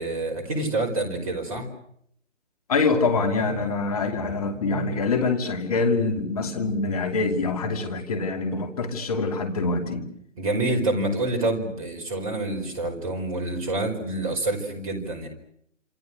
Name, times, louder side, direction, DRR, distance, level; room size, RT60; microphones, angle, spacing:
voice 1, 0.0-1.7 10.4-15.3, right 2 dB, 30° right, 4 dB, 5.1 m, -27 dB
voice 2, 2.7-10.1, left 3 dB, 30° left, 6 dB, 2.7 m, -25 dB
28.0 x 27.0 x 6.3 m, 0.69 s
figure-of-eight pair, 150°, 37 cm